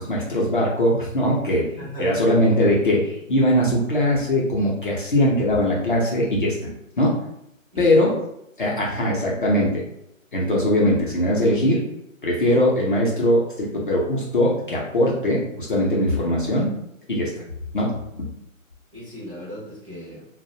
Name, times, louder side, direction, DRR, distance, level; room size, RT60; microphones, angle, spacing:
voice 1, 0.0-1.7 2.0-7.2 7.7-8.1 8.6-9.8 10.3-11.8 12.2-16.7 17.1-17.3 17.7-18.3, left 1 dB, 40° left, -4 dB, 0.4 m, -21 dB
voice 2, 1.8-2.4 7.7-8.0 18.9-20.2, equal, 25° right, -9 dB, 0.4 m, -36 dB
2.4 x 2.0 x 2.6 m, 0.80 s
hypercardioid pair, 160°, 41 cm